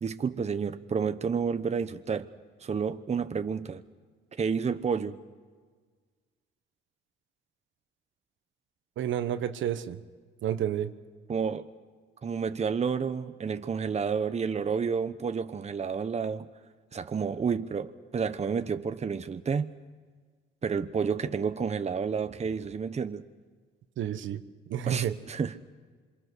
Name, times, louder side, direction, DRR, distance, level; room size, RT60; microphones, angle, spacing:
voice 1, 0.0-2.3 2.6-3.8 4.4-5.2 11.3-11.7 12.2-16.5 16.9-19.7 20.6-23.2 24.9-25.6, right 6 dB, 35° right, 1.0 m, -30 dB
voice 2, 9.0-10.0 10.4-10.9 24.0-24.4 24.7-25.1, right 10 dB, 75° right, 1.2 m, -30 dB
27.0 x 24.5 x 6.3 m
cardioid pair, 90°, 20 cm